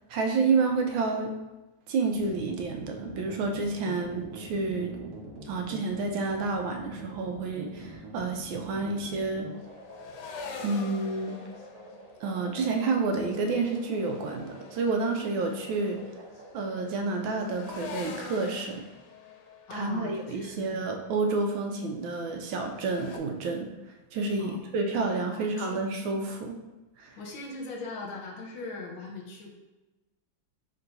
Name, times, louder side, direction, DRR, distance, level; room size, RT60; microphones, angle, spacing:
voice 1, 0.1-1.4 1.9-4.9 5.5-9.5 10.6-11.4 12.2-16.0 16.5-18.8 19.7-23.7 24.1-26.6 27.0-27.2, right 3 dB, 80° right, 3 dB, 1.3 m, -29 dB
sound 1, 2.1-16.9, right 2 dB, 65° right, 1.3 m, -45 dB
sound 2, 9.4-23.2, left 5 dB, 90° left, 1.4 m, -46 dB
voice 2, 19.7-20.9 24.4-24.7 25.3-25.9 27.2-29.5, left 3 dB, 75° left, -1 dB, 1.5 m, -40 dB
3.7 x 2.6 x 4.5 m, 1.1 s
omnidirectional pair, 2.2 m